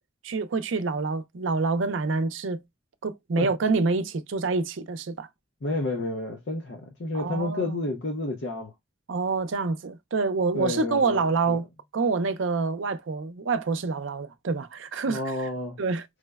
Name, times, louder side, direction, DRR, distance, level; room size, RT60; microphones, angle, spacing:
voice 1, 0.2-2.6 3.0-5.3 7.1-7.8 9.1-11.7 11.9-15.2 15.8-16.0, right 4 dB, 75° right, 0.5 m, -27 dB
voice 2, 5.6-8.7 10.5-11.6 15.1-15.8, left 2 dB, 65° left, 0.6 m, -30 dB
4.7 x 2.1 x 2.2 m
head